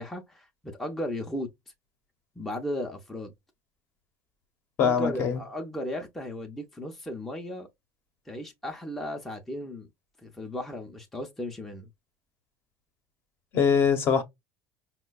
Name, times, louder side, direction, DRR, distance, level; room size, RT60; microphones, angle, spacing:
voice 1, 0.0-1.5 2.4-3.3 4.8-7.7 8.3-9.9 10.2-11.9, left 1 dB, 5° left, 0.5 m, -35 dB
voice 2, 4.8-5.4 13.5-14.2, left 6 dB, 40° left, 0.7 m, -23 dB
5.2 x 2.1 x 2.3 m
cardioid pair, 160°, 6 cm